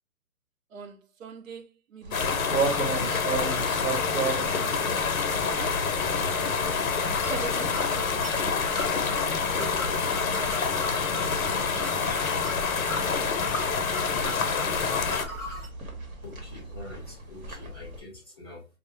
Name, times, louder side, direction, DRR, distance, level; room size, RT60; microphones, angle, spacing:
voice 1, 0.7-2.4 2.8-3.2 3.8-6.8 7.3-9.0 9.6-9.9 10.4-10.7 10.9-11.1 11.7-12.2, right 5 dB, 65° right, 0.6 m, -43 dB
sound 1, 2.0-18.0, right 4 dB, 85° right, 1.2 m, -36 dB
sound 2, 2.1-15.2, left 5 dB, 75° left, 0.7 m, -27 dB
sound 3, 7.1-15.7, left 1 dB, 5° right, 0.8 m, -39 dB
voice 2, 16.2-18.7, left 2 dB, 20° left, 0.5 m, -45 dB
2.4 x 2.0 x 3.0 m
hypercardioid pair, 155°, 42 cm